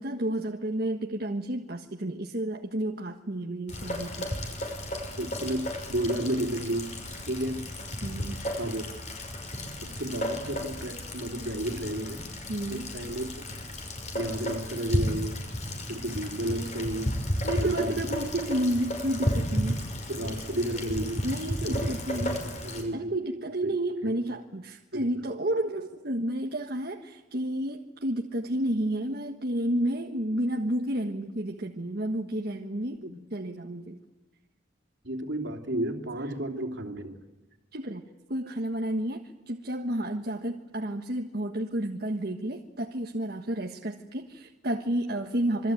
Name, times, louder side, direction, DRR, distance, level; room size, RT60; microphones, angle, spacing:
voice 1, 0.0-4.3 8.0-8.4 12.5-12.9 17.4-19.9 21.2-22.4 22.9-33.0 33.3-34.0 37.7-38.0 38.3-45.7, right 1 dB, 50° right, 2 dB, 1.5 m, -31 dB
Rain, 3.7-22.8, equal, 35° left, 5.8 m, -33 dB
voice 2, 5.2-6.9 7.3-7.7 8.6-8.8 9.8-12.3 12.7-13.5 14.1-15.4 15.9-17.2 17.6-18.1 20.1-21.3 21.7-23.1 23.6-23.8 24.0-24.2 24.9-25.1 33.0-33.2 35.0-37.2, right 1 dB, 70° right, 5 dB, 3.1 m, -32 dB
27.0 x 23.5 x 9.3 m, 1.1 s
head